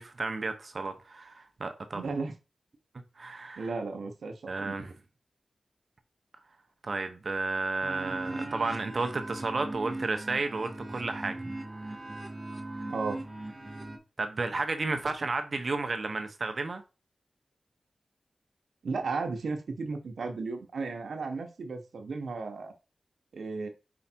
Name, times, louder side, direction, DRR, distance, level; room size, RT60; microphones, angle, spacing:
voice 1, 0.0-2.0 3.2-3.7 4.5-4.9 6.8-11.4 14.2-16.8, right 3 dB, 55° right, 1.1 m, -32 dB
voice 2, 1.9-2.3 3.6-4.8 12.9-13.2 18.8-22.7 23.3-23.7, right 4 dB, 85° right, 1.2 m, -34 dB
sound 1, 7.8-14.0, right 2 dB, 25° right, 1.5 m, -39 dB
5.0 x 4.9 x 4.5 m
wide cardioid pair, 75°, 0 cm